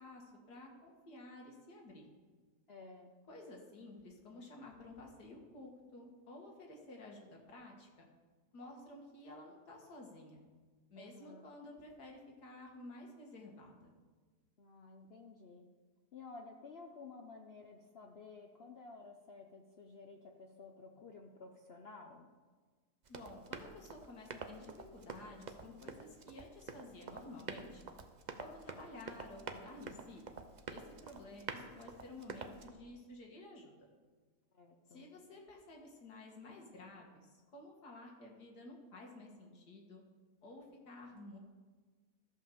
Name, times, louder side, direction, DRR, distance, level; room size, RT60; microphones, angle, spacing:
voice 1, 0.0-2.1 3.3-7.9 8.5-10.4 10.9-13.9 23.1-27.8 28.4-30.3 30.7-33.9 34.9-40.0 40.4-41.4, left 2 dB, 85° left, 0 dB, 2.4 m, -53 dB
voice 2, 2.7-3.1 11.0-11.4 14.6-15.7 16.1-22.3 34.5-35.1, left 4 dB, 50° left, 2 dB, 0.8 m, -53 dB
Run, 23.0-32.7, right 4 dB, 45° right, 0.5 m, -48 dB
14.0 x 5.6 x 6.9 m, 1.4 s
omnidirectional pair, 1.7 m